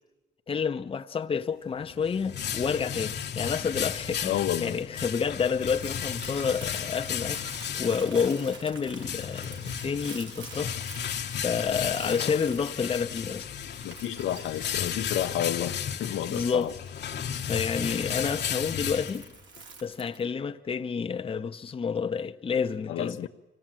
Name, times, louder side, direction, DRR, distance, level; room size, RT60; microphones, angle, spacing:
voice 1, 0.5-7.5 7.8-10.7 11.4-13.5 16.3-16.7 17.4-19.3 19.8-23.3, left 6 dB, 30° left, 0.7 m, -29 dB
sound 1, 1.7-19.6, left 8 dB, 60° left, 1.1 m, -34 dB
Crumpling crinkling, 3.8-20.3, right 4 dB, 75° right, 2.4 m, -49 dB
voice 2, 4.2-4.8 12.0-12.6 13.8-16.7 22.9-23.3, left 11 dB, 80° left, 0.9 m, -31 dB
25.0 x 17.0 x 7.5 m
cardioid pair, 90°, 20 cm